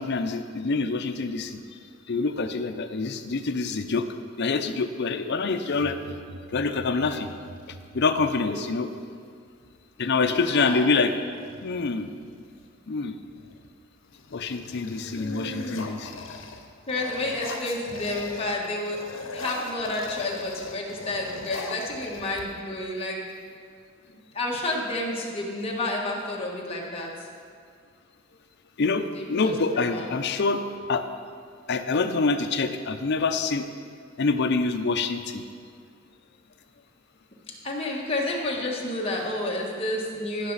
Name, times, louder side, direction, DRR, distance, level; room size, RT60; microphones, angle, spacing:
voice 1, 0.0-1.6 2.1-4.1 4.4-6.0 6.5-7.3 7.9-8.9 10.0-11.2 11.6-12.1 12.9-13.2 14.3-16.1 28.8-31.0 31.7-33.7 34.2-35.4, left 4 dB, 60° left, 8 dB, 0.6 m, -26 dB
sound 1, 5.7-9.0, right 1 dB, 55° right, 0.6 m, -45 dB
sound 2, 7.0-7.9 9.6-9.8 10.1-10.6 11.1-12.7 13.3-13.7 14.0-18.6 18.9-22.8, left 3 dB, 80° left, 0.9 m, -39 dB
voice 2, 10.3-10.9 15.1-15.8 16.9-19.0 19.3-23.2 24.3-27.1 29.1-30.1 37.6-40.5, left 1 dB, 30° left, -2 dB, 1.5 m, -30 dB
15.5 x 5.9 x 4.0 m, 2.1 s
head